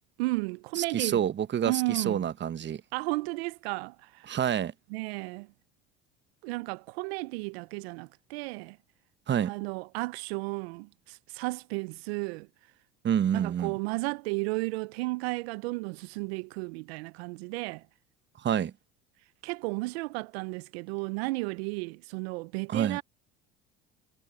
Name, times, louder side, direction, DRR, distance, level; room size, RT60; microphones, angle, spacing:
voice 1, 0.2-1.2 1.7-2.2 2.9-4.4 4.9-5.5 6.4-8.8 9.4-12.5 13.3-17.8 19.4-23.0, right 24 dB, 80° right, 0.7 m, -33 dB
voice 2, 0.8-2.8 4.3-4.7 9.3-9.5 13.0-13.8 18.4-18.7 22.7-23.0, right 9 dB, 35° right, 1.0 m, -28 dB
hypercardioid pair, 70°, 31 cm